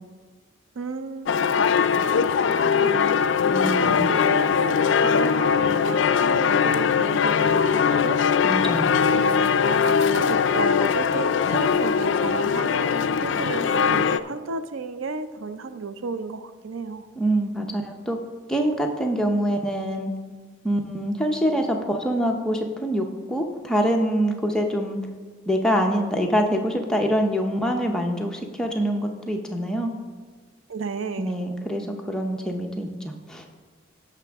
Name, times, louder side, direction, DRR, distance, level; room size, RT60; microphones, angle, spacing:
voice 1, 0.8-1.3 2.0-8.2 9.1-17.1 30.7-31.3, right 4 dB, 80° right, 11 dB, 0.5 m, -33 dB
sound 1, 1.3-14.2, left 6 dB, 65° left, 0.3 m, -21 dB
voice 2, 3.5-4.1 8.4-9.0 17.2-18.2 18.5-20.1 20.6-25.0 25.5-29.9 31.2-33.5, equal, 5° left, 1 dB, 0.6 m, -25 dB
15.5 x 5.9 x 3.5 m, 1.4 s
head